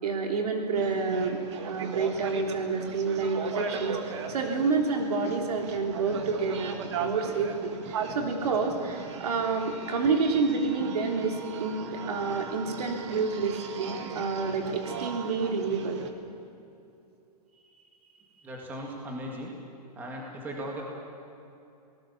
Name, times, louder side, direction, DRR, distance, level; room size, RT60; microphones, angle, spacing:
voice 1, 0.0-16.0, right 4 dB, 65° right, 2 dB, 3.4 m, -29 dB
sound 1, 0.7-16.1, right 6 dB, 45° right, 1.9 m, -38 dB
voice 2, 18.4-19.5 20.0-20.8, equal, 10° right, -1 dB, 2.1 m, -37 dB
27.5 x 18.5 x 7.2 m, 2.7 s
hypercardioid pair, 175°, 21 cm